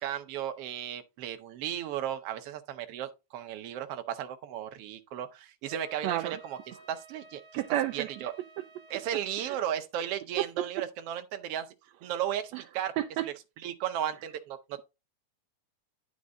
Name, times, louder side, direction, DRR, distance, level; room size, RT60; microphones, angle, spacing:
voice 1, 0.0-6.6 6.9-7.4 7.9-8.3 8.9-11.7 12.0-12.9 13.6-14.8, right 10 dB, 65° right, 1.7 m, -35 dB
Wind instrument woodwind instrument, 5.6-9.6, right 1 dB, 15° right, 2.5 m, -53 dB
voice 2, 6.0-6.4 7.5-8.1 9.4-9.6 10.4-10.6 12.5-12.6 13.0-13.3, right 13 dB, 80° right, 1.6 m, -30 dB
10.0 x 5.3 x 3.7 m
omnidirectional pair, 3.5 m